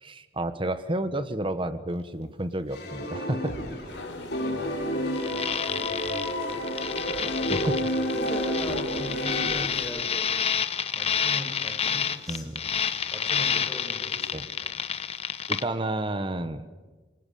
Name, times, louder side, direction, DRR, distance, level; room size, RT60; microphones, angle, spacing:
voice 1, 0.0-3.5 3.9-4.3 7.5-7.7 12.3-12.8 14.3-14.5 15.5-16.7, right 1 dB, 30° right, 11 dB, 1.2 m, -31 dB
sound 1, 2.7-4.0 4.3-9.5, equal, 60° left, 7.4 m, -30 dB
sound 2, 3.9-9.9, left 3 dB, 80° left, 4.1 m, -41 dB
voice 2, 3.9-4.7 5.3-6.6 7.2-10.3 10.9-14.8, equal, ahead, -1 dB, 7.3 m, -41 dB
sound 3, 5.2-15.6, left 7 dB, 35° left, 0.9 m, -29 dB
27.0 x 24.5 x 8.5 m, 1.3 s
head